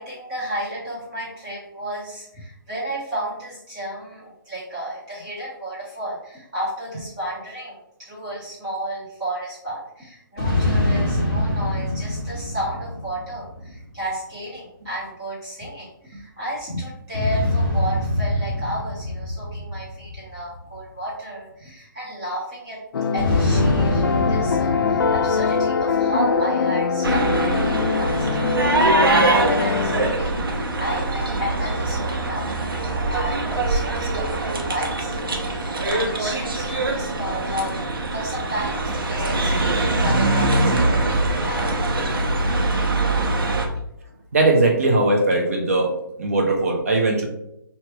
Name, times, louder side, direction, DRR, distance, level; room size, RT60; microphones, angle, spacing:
voice 1, 0.0-22.8 23.1-37.8 38.1-41.8, right 1 dB, 15° right, -9 dB, 1.6 m, -33 dB
sound 1, 10.4-14.0 17.1-20.8 23.2-26.6, left 1 dB, ahead, 1.6 m, -24 dB
sound 2, 22.9-30.1, left 5 dB, 80° left, 0.4 m, -23 dB
sound 3, 27.0-43.7, right 2 dB, 90° right, 1.1 m, -23 dB
voice 2, 44.3-47.3, right 2 dB, 40° right, 0 dB, 1.0 m, -20 dB
3.4 x 2.8 x 4.5 m, 0.79 s
hypercardioid pair, 180°, 12 cm